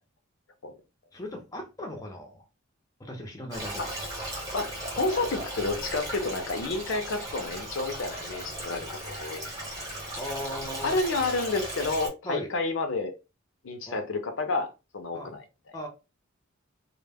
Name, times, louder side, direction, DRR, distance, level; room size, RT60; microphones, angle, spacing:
voice 1, 1.1-2.4 3.0-3.9 10.1-11.0 12.2-12.5 13.9-14.0 15.1-15.3 15.7-15.9, left 1 dB, 15° left, 0.5 m, -37 dB
Stream, 3.5-12.1, right 1 dB, 15° right, 0.8 m, -37 dB
voice 2, 4.9-9.7 10.8-13.1 13.6-15.4, left 3 dB, 65° left, 0.5 m, -30 dB
2.1 x 2.0 x 3.3 m
head